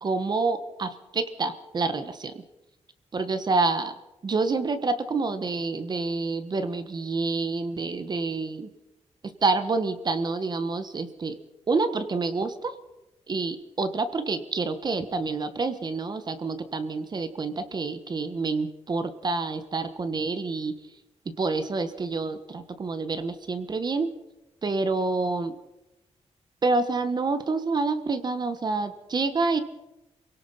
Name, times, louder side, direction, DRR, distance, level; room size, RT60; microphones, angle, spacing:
voice 1, 0.0-2.4 3.1-3.9 4.2-8.7 9.2-11.4 11.7-12.7 13.3-20.8 21.2-24.1 24.6-25.5 26.6-29.6, right 3 dB, 35° right, 10 dB, 1.3 m, -28 dB
28.0 x 18.0 x 5.7 m, 0.95 s
wide cardioid pair, 150°, 12 cm